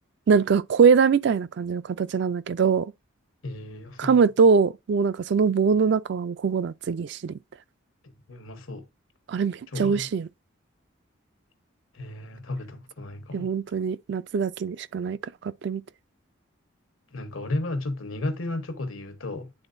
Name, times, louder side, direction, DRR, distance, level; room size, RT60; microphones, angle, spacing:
voice 1, 0.3-2.9 4.0-7.3 9.3-10.3 13.3-15.8, right 5 dB, 60° right, 0.3 m, -22 dB
voice 2, 3.4-4.2 8.0-8.9 9.7-10.1 11.9-13.5 17.1-19.5, left 2 dB, 90° left, 1.1 m, -33 dB
9.9 x 3.8 x 2.5 m
head